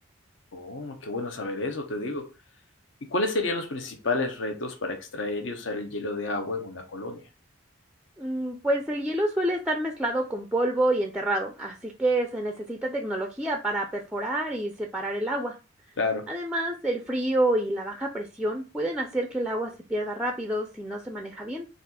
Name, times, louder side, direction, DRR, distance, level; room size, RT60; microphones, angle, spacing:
voice 1, 0.5-2.3 3.0-7.2 16.0-16.3, left 2 dB, 65° left, 0.8 m, -30 dB
voice 2, 8.2-15.6 16.3-21.7, right 1 dB, 5° right, 0.4 m, -28 dB
4.2 x 2.4 x 4.2 m
head